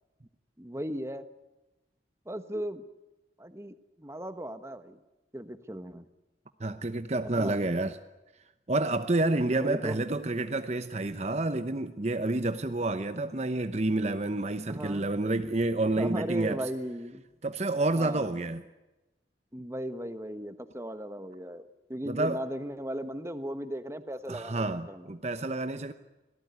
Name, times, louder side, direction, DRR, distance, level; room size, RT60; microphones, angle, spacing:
voice 1, 0.6-1.3 2.2-2.8 3.4-5.0 5.3-6.1 7.4-7.6 9.4-10.0 14.7-15.1 16.0-17.2 17.9-18.3 19.5-25.1, equal, 15° right, 1.3 m, -37 dB
voice 2, 6.6-8.0 8.7-16.6 17.4-18.6 22.0-22.4 24.3-25.9, right 2 dB, 40° right, 0.9 m, -29 dB
26.0 x 18.0 x 9.6 m
head